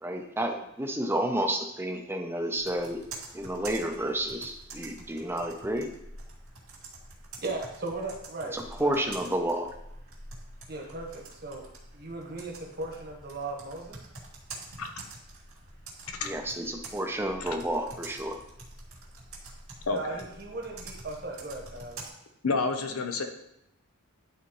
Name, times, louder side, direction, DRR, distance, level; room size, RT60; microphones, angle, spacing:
voice 1, 0.0-3.0 3.3-5.9 8.5-9.7 16.2-18.4, right 1 dB, 10° right, 4 dB, 0.6 m, -30 dB
Computer keyboard, 2.6-22.1, right 2 dB, 80° right, 2.3 m, -47 dB
voice 2, 7.4-9.0 10.7-11.7 11.9-14.0 19.9-22.0, right 2 dB, 45° right, 1 dB, 1.3 m, -37 dB
voice 3, 19.9-20.2 22.4-23.2, left 4 dB, 85° left, 6 dB, 0.8 m, -29 dB
11.0 x 4.1 x 3.1 m, 0.80 s
head